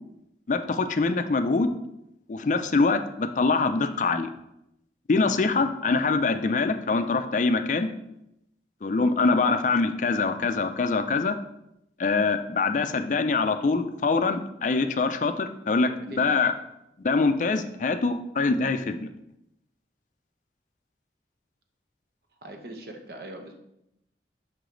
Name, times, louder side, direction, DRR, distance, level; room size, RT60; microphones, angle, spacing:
voice 1, 0.5-1.7 2.3-4.3 5.1-7.9 8.8-11.4 12.0-16.5 17.0-19.1, left 3 dB, 45° left, 9 dB, 0.4 m, -24 dB
voice 2, 16.1-16.4 22.4-23.6, right 1 dB, 55° right, 3 dB, 0.9 m, -40 dB
5.8 x 4.9 x 3.8 m, 0.83 s
head